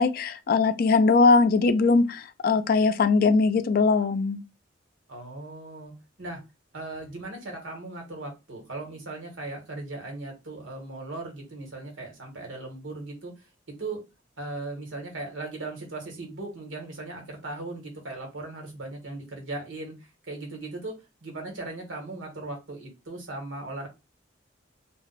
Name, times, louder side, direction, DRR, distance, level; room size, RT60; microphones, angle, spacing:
voice 1, 0.0-4.4, left 4 dB, 50° left, 0.3 m, -21 dB
voice 2, 5.1-5.9 6.2-6.4 6.7-13.3 13.8-14.0 14.4-19.9 20.3-20.9 21.2-23.9, right 2 dB, 80° right, 1.3 m, -38 dB
2.4 x 2.2 x 3.9 m
head